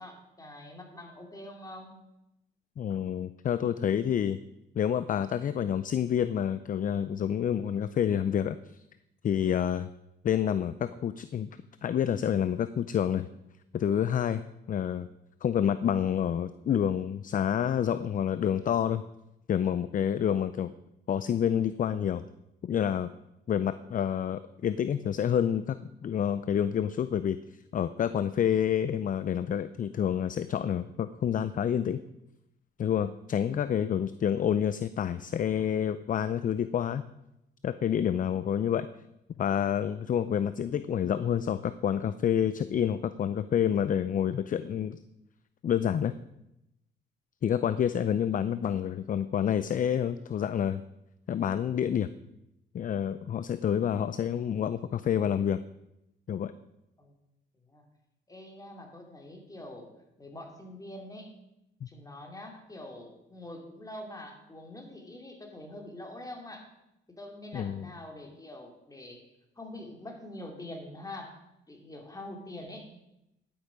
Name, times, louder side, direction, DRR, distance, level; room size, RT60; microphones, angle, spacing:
voice 1, 0.0-2.0 57.0-57.1 57.6-57.8 58.3-59.9 60.2-61.4 61.9-66.7 67.1-69.3 69.6-71.4 71.7-72.9, left 1 dB, 15° left, 2 dB, 2.6 m, -44 dB
voice 2, 2.8-4.4 4.7-8.8 9.2-9.9 10.2-11.5 11.8-13.3 13.7-14.4 14.7-15.1 15.4-19.0 19.5-20.7 21.1-22.2 22.6-23.1 23.5-25.8 26.0-27.4 27.7-32.0 32.8-37.0 37.6-38.9 39.4-45.0 45.6-46.1 47.4-50.8 51.3-52.1 52.7-55.6 56.3-56.5 61.8-61.9 67.5-67.9, left 9 dB, 40° left, 14 dB, 0.5 m, -28 dB
10.5 x 8.6 x 5.0 m, 0.86 s
cardioid pair, 90°, 20 cm